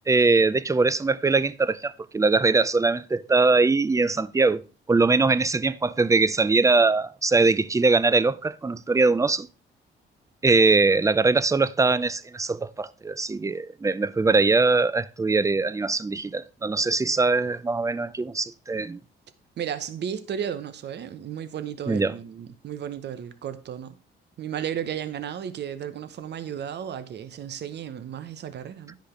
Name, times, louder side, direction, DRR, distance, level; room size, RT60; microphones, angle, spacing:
voice 1, 0.1-9.5 10.4-19.0 21.9-22.1, right 3 dB, 15° right, 0.5 m, -22 dB
voice 2, 19.6-24.0 24.4-29.0, right 9 dB, 60° right, 1.0 m, -34 dB
10.5 x 5.2 x 5.0 m
cardioid pair, 90°, 20 cm